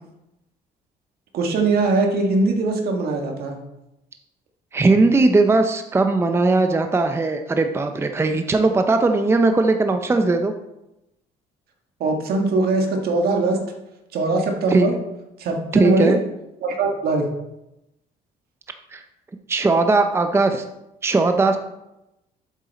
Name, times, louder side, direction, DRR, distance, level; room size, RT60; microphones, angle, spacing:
voice 1, 1.3-3.6 12.0-13.6 14.1-15.0 15.4-16.2 16.6-17.3, right 3 dB, 65° right, 3 dB, 1.7 m, -21 dB
voice 2, 4.7-10.5 14.7-14.9 15.7-16.2 18.9-19.0 19.5-20.6 21.0-21.6, right 3 dB, 15° right, 7 dB, 0.6 m, -18 dB
7.8 x 7.3 x 4.1 m, 0.90 s
cardioid pair, 110°, 17 cm